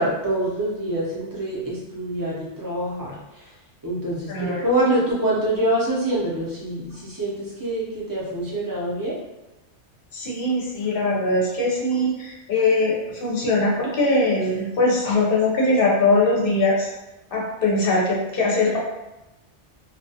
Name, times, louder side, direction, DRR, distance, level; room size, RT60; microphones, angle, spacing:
voice 1, 0.0-3.2 3.8-9.2, right 1 dB, 25° right, -6 dB, 0.4 m, -25 dB
voice 2, 4.3-4.6 10.1-16.9 17.3-18.8, left 2 dB, 60° left, -3 dB, 0.7 m, -21 dB
2.3 x 2.2 x 2.6 m, 1.0 s
omnidirectional pair, 1.2 m